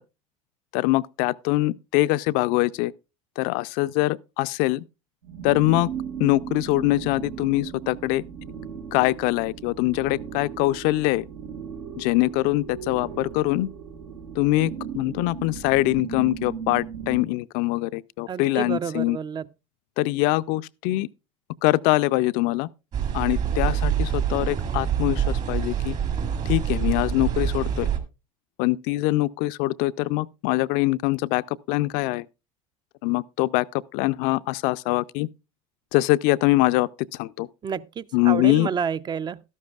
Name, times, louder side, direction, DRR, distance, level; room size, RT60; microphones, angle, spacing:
voice 1, 0.7-2.9 3.4-4.8 5.4-5.9 6.2-8.2 8.9-11.3 12.0-13.7 14.4-19.2 20.0-21.1 21.6-22.7 23.1-26.0 26.5-27.9 28.6-32.3 33.0-33.7 33.9-35.3 35.9-36.9 37.2-37.5 38.1-38.7, left 19 dB, 65° left, 0.4 m, -23 dB
sound 1, 5.2-17.2, right 7 dB, 80° right, 1.5 m, -37 dB
voice 2, 18.3-19.4 37.6-39.4, right 7 dB, 25° right, 0.4 m, -29 dB
sound 2, 22.9-28.0, right 8 dB, 50° right, 1.9 m, -25 dB
12.5 x 12.0 x 2.3 m
hypercardioid pair, 85°, 16 cm